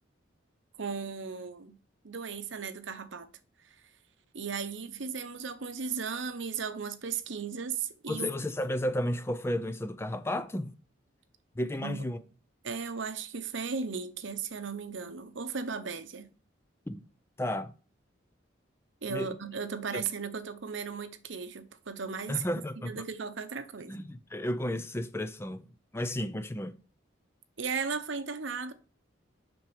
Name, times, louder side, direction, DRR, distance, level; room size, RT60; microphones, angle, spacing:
voice 1, 0.8-1.8 2.0-3.4 3.6-3.7 4.3-8.3 11.7-12.0 12.6-16.3 19.0-22.4 22.8-24.0 27.6-28.7, right 5 dB, 75° right, 0.8 m, -36 dB
voice 2, 8.1-10.8 11.6-12.2 16.9-17.0 17.4-17.7 19.1-19.3 19.9-20.0 22.3-23.0 23.9-25.6 25.9-26.8, left 1 dB, 10° left, 0.4 m, -33 dB
7.3 x 6.1 x 4.8 m
head